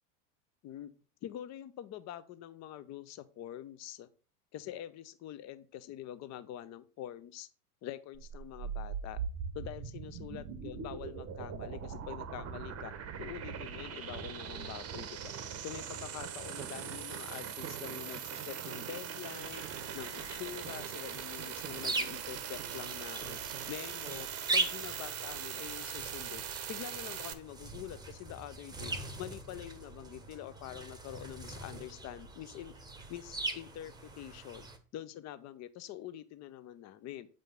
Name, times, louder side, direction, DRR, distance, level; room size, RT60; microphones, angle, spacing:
voice 1, 1.2-4.1 4.5-7.5 7.8-9.2 9.5-12.9 13.2-15.2 15.6-19.6 19.9-26.4 26.7-28.9 29.2-32.7 33.1-34.7 34.9-37.3, left 12 dB, 35° left, 13 dB, 0.8 m, -45 dB
sound 1, 8.1-27.3, right 8 dB, 30° right, 1.0 m, -41 dB
sound 2, 16.6-20.3 20.6-22.9 23.2-23.7 24.1-24.3, right 11 dB, 85° right, 0.6 m, -49 dB
sound 3, 19.4-34.8, right 3 dB, 10° right, 1.0 m, -41 dB
8.0 x 5.2 x 3.8 m, 0.37 s
hypercardioid pair, 90°, 46 cm